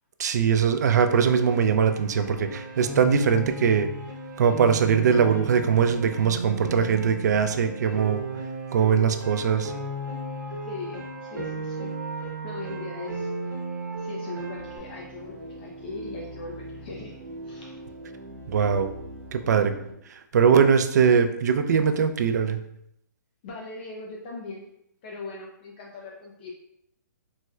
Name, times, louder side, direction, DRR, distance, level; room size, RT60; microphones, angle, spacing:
voice 1, 0.2-3.9 4.4-8.2 8.7-9.7 18.5-18.9 19.3-19.7 20.1-22.6, right 7 dB, 60° right, 8 dB, 0.4 m, -21 dB
Piano, 1.1-14.8, right 2 dB, 85° right, 1.0 m, -35 dB
voice 2, 10.6-11.9 12.2-13.5 14.0-17.2 17.4-17.8 23.4-24.7 25.0-26.5, left 3 dB, 30° left, -1 dB, 0.4 m, -39 dB
sound 1, 14.5-19.9, right 1 dB, 35° right, 0.8 m, -42 dB
4.1 x 2.1 x 2.3 m, 0.75 s
hypercardioid pair, 160°, 10 cm